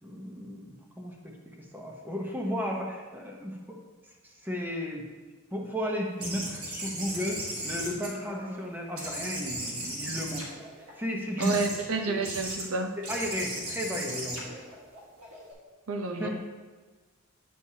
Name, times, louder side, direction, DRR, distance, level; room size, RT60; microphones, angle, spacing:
voice 1, 0.0-3.8 4.2-5.0 5.5-10.5 11.0-11.6 12.1-12.2 13.0-14.5 16.2-16.3, equal, 10° right, 0 dB, 0.9 m, -34 dB
sound 1, 6.2-8.6 9.0-10.9 11.4-11.8 12.2-12.6 13.0-15.5, right 1 dB, 90° right, 1.5 m, -37 dB
voice 2, 11.4-13.0 15.9-16.3, right 3 dB, 70° right, 4 dB, 0.7 m, -30 dB
8.3 x 6.1 x 2.8 m, 1.4 s
head